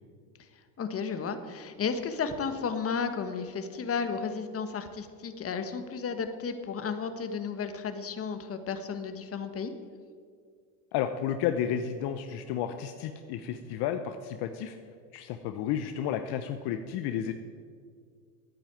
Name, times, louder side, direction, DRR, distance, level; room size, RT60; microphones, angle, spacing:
voice 1, 0.8-9.7, left 5 dB, 30° left, 8 dB, 1.4 m, -33 dB
voice 2, 10.9-14.8 15.1-17.3, left 9 dB, 55° left, 8 dB, 0.9 m, -32 dB
11.0 x 9.0 x 9.0 m, 2.1 s
supercardioid pair, 100°, 47 cm